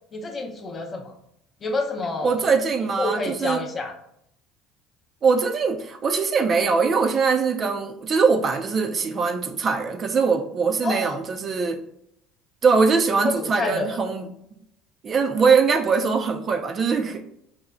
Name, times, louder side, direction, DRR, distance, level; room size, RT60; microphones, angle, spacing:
voice 1, 0.1-1.1 1.6-2.4 3.0-3.9 10.8-11.2 13.2-13.9, left 2 dB, 30° left, 3 dB, 0.5 m, -28 dB
voice 2, 2.2-3.6 5.2-11.8 12.6-14.3 15.0-17.2, right 5 dB, 35° right, 5 dB, 0.3 m, -22 dB
4.3 x 2.0 x 2.3 m, 0.74 s
supercardioid pair, 105°, 0 cm